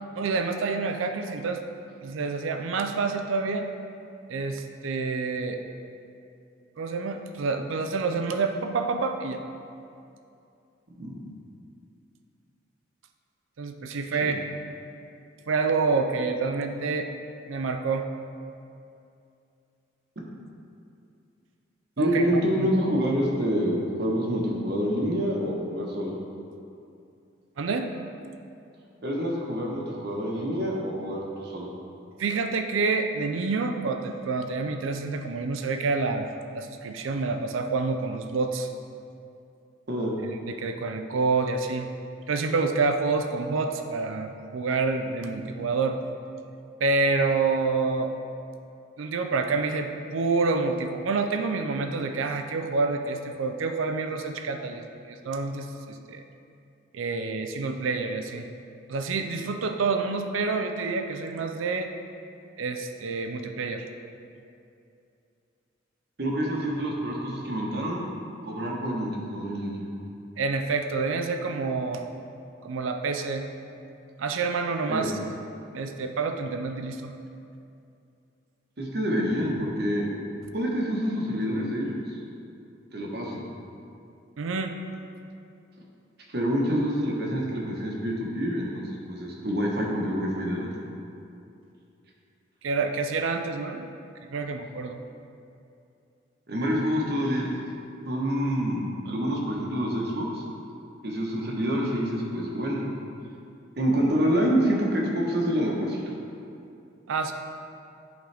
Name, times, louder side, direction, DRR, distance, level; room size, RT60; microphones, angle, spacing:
voice 1, 0.2-1.6 2.0-3.7 4.3-5.6 6.8-9.4 13.6-14.4 15.5-17.1 17.5-18.1 22.0-22.2 22.6-22.7 27.6-27.9 32.2-38.7 40.3-41.9 42.3-46.0 46.8-48.1 49.0-54.8 55.1-56.2 56.9-58.5 58.9-61.9 62.6-63.9 70.4-72.0 72.6-73.5 74.2-75.1 75.7-77.1 84.4-84.7 92.6-93.9 94.3-95.0 107.1-107.3, right 4 dB, 85° right, 6 dB, 0.5 m, -28 dB
voice 2, 11.0-11.3 14.2-14.3 22.0-26.1 29.0-31.7 39.9-40.1 66.2-68.1 68.4-69.9 74.9-75.1 78.8-80.1 80.5-82.0 82.9-83.4 86.3-90.7 96.5-97.5 98.0-100.4 101.0-102.8 103.8-106.0, equal, 55° right, -2 dB, 1.1 m, -27 dB
11.0 x 3.9 x 3.4 m, 2.6 s
head